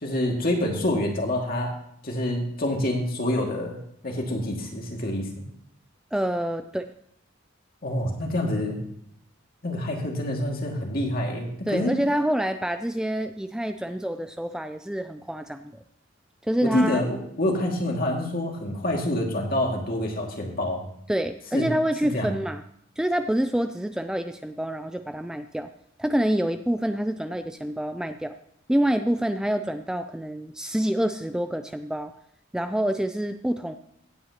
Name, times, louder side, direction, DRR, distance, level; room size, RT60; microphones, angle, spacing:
voice 1, 0.0-1.7 2.0-5.3 7.8-8.8 9.6-12.0 16.6-20.8 21.5-21.7 22.1-22.3, left 1 dB, 50° left, 1 dB, 2.1 m, -27 dB
voice 2, 6.1-6.9 11.7-15.7 16.4-17.0 21.1-22.6 23.0-25.7 26.0-28.3 28.7-32.1 32.5-33.7, right 1 dB, 5° right, 8 dB, 0.3 m, -27 dB
16.0 x 8.7 x 2.9 m, 0.71 s
head